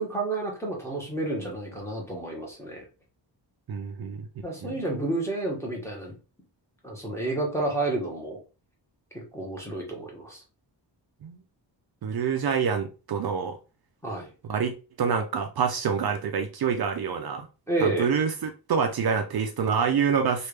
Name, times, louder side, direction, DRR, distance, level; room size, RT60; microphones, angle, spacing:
voice 1, 0.0-2.8 4.4-6.1 6.8-8.4 9.1-10.4 14.0-14.3 17.7-18.1, right 2 dB, 5° left, 1.0 m, -30 dB
voice 2, 3.7-4.3 4.6-4.7 11.2-11.4 12.0-13.6 14.5-17.5 17.8-20.5, right 6 dB, 60° right, 0.5 m, -27 dB
3.3 x 2.5 x 3.1 m
wide cardioid pair, 165°, 44 cm